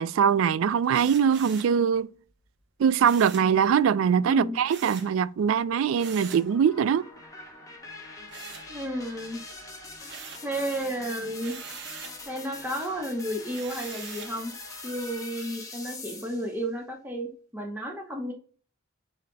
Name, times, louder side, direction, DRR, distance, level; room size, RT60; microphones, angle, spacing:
voice 1, 0.0-2.1 2.8-7.1, right 7 dB, 80° right, 0.3 m, -22 dB
sound 1, 0.9-1.8 3.0-3.5 4.7-5.1 6.0-6.5 8.3-9.1 9.5-10.5 11.4-12.2 13.5-14.4, right 6 dB, 60° right, 0.9 m, -43 dB
voice 2, 4.3-4.6 8.7-9.4 10.4-11.6 12.3-14.5 14.8-18.3, right 1 dB, 10° right, 0.9 m, -32 dB
sound 2, 5.5-16.6, left 3 dB, 15° left, 1.1 m, -43 dB
8.1 x 2.9 x 2.2 m
head